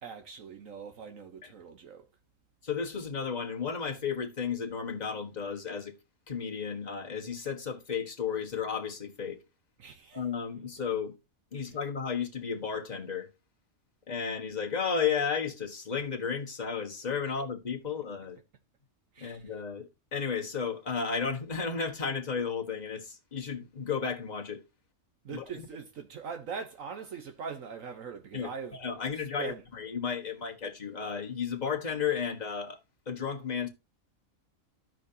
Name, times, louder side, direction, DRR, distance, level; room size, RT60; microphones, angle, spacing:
voice 1, 0.0-2.0 9.8-10.2 19.1-19.4 25.2-28.8 29.4-29.6, right 6 dB, 70° right, 1.4 m, -41 dB
voice 2, 2.6-5.9 6.3-9.4 10.1-11.1 11.5-13.3 14.1-18.4 19.2-24.6 25.3-25.7 28.3-32.8 33.1-33.7, left 6 dB, 30° left, 1.4 m, -33 dB
15.0 x 5.0 x 2.8 m
omnidirectional pair, 1.5 m